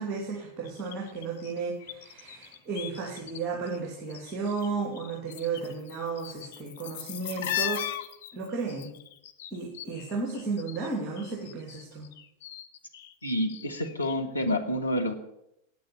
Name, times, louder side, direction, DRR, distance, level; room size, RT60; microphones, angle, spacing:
voice 1, 0.0-7.9 8.3-8.9 9.5-12.1, right 4 dB, 25° right, 0 dB, 2.6 m, -34 dB
sound 1, 0.6-3.4 3.7-4.7 4.9-10.9 11.2-14.2 14.5-14.6, left 12 dB, 55° left, 0.8 m, -38 dB
voice 2, 13.2-15.1, left 1 dB, 85° left, 3 dB, 1.4 m, -28 dB
9.5 x 8.5 x 8.5 m, 0.83 s
figure-of-eight pair, 90°, 0 cm